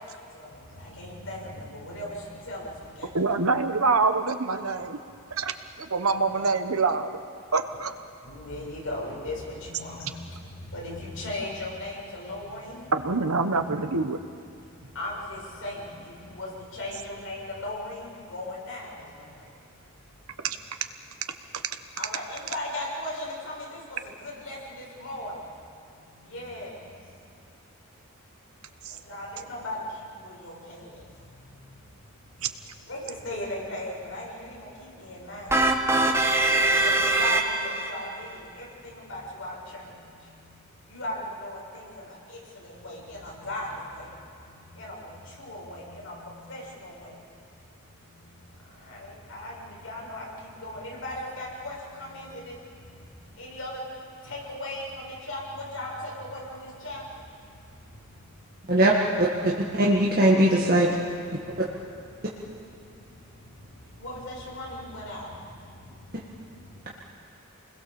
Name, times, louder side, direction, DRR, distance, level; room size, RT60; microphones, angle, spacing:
voice 1, 0.9-2.2 2.5-2.7 3.0-3.1 6.0-6.5 8.3-10.1 10.7-12.9 15.0-15.8 16.3-16.5 16.8-18.0 18.3-18.9 22.0-23.8 24.2-24.6 25.0-25.3 26.3-26.7 29.1-29.8 30.2-30.8 32.9-33.0 33.2-34.5 35.0-35.5 36.8-38.3 39.1-39.8 40.9-41.1 41.4-41.8 42.6-44.0 44.8-45.0 45.4-46.1 46.5-47.1 48.9-49.0 49.3-49.5 49.8-50.3 50.6-52.3 53.4-53.7 54.3-54.8 55.3-55.4 55.7-56.4 56.8-57.0 64.0-65.3, left 1 dB, 65° left, -4 dB, 7.3 m, -36 dB
voice 2, 3.1-5.0 5.4-7.2 7.5-7.9 12.9-14.2 20.4-20.6 28.8-29.0 32.4-32.5, right 4 dB, 80° right, 8 dB, 1.3 m, -25 dB
sound 1, 35.5-37.9, right 2 dB, 10° right, 1.4 m, -22 dB
voice 3, 59.2-60.9, right 1 dB, 40° right, -4 dB, 1.8 m, -20 dB
28.0 x 21.0 x 7.1 m, 2.4 s
head